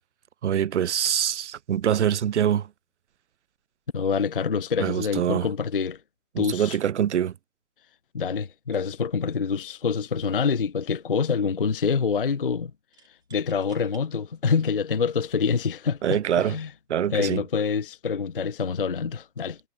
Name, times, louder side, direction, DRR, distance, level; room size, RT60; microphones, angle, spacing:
voice 1, 0.4-2.7 4.8-5.5 6.3-7.3 16.0-16.6 16.9-17.4, right 9 dB, 45° right, 0.7 m, -24 dB
voice 2, 3.9-6.0 6.4-6.8 8.1-12.7 13.3-16.7 17.1-19.6, left 5 dB, 35° left, 0.4 m, -26 dB
sound 1, 9.8-10.0 10.4-11.0 12.9-14.1 14.8-14.9 15.8-16.1, right 7 dB, 10° right, 3.9 m, -57 dB
hypercardioid pair, 155°, 48 cm